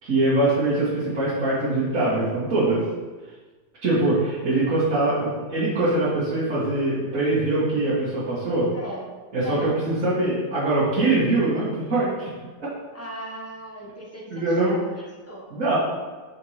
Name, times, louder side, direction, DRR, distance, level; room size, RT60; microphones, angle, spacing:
voice 1, 0.0-2.8 3.8-8.7 9.3-12.1 12.6-12.7 14.3-14.8 15.5-15.8, right 2 dB, 50° right, -12 dB, 2.2 m, -23 dB
voice 2, 8.7-9.0 9.4-9.7 12.9-15.5, equal, 10° left, -3 dB, 1.0 m, -38 dB
6.6 x 4.7 x 4.3 m, 1.3 s
omnidirectional pair, 1.8 m